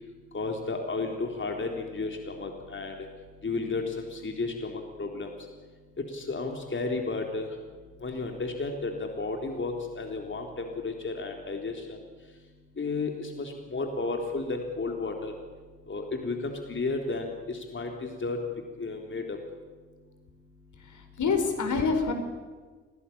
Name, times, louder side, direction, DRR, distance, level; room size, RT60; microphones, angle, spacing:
voice 1, 0.3-2.9 3.4-5.3 6.1-7.5 8.0-12.0 12.8-15.3 15.9-18.4 18.8-19.4, left 3 dB, 30° left, 3 dB, 3.7 m, -33 dB
voice 2, 20.8-22.1, left 4 dB, 50° left, 6 dB, 4.6 m, -27 dB
27.5 x 18.5 x 8.7 m, 1.4 s
hypercardioid pair, 45°, 37 cm